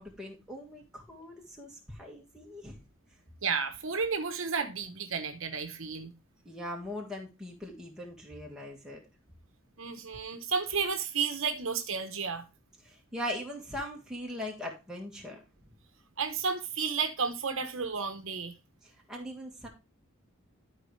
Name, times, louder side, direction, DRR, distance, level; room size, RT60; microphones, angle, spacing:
voice 1, 0.0-2.8 6.5-9.0 12.8-15.4 18.8-19.7, left 1 dB, 5° right, 1.7 m, -40 dB
voice 2, 3.4-6.1 9.8-12.4 16.2-18.5, right 5 dB, 65° right, 1.0 m, -32 dB
12.5 x 4.8 x 3.2 m
head